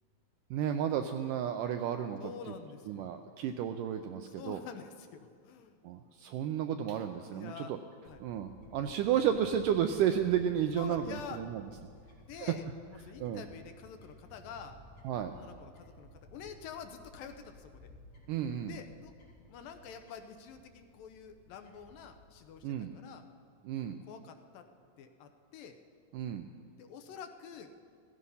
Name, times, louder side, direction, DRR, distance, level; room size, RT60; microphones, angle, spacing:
voice 1, 0.5-2.2 2.9-4.6 5.8-7.8 8.2-11.6 13.2-13.4 15.1-15.3 18.3-18.7 22.6-22.9 23.7-24.0 26.1-26.5, right 9 dB, 85° right, 7 dB, 1.9 m, -32 dB
voice 2, 2.2-3.4 4.3-5.8 7.3-7.8 8.0-8.2 10.7-11.4 12.3-14.8 15.2-17.9 18.7-19.1 19.5-23.2 24.0-24.7 25.0-25.8 26.8-27.7, left 7 dB, 75° left, 7 dB, 2.4 m, -47 dB
Fowl / Bird, 8.0-22.7, left 1 dB, 35° left, 4.1 m, -56 dB
16.0 x 15.0 x 5.6 m, 2.2 s
omnidirectional pair, 4.3 m